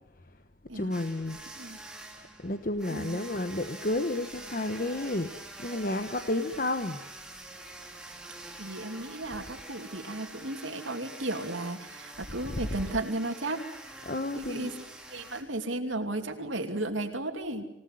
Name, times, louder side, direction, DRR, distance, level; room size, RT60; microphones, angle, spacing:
voice 1, 0.7-1.4 2.4-7.0 12.5-12.7 14.0-14.7, left 2 dB, 45° left, 8 dB, 1.2 m, -31 dB
sound 1, 0.9-15.4, right 2 dB, 5° right, 3.2 m, -46 dB
voice 2, 8.6-13.6 14.3-14.7 15.1-17.6, right 2 dB, 80° right, 4 dB, 2.9 m, -34 dB
27.5 x 18.5 x 9.4 m, 0.84 s
head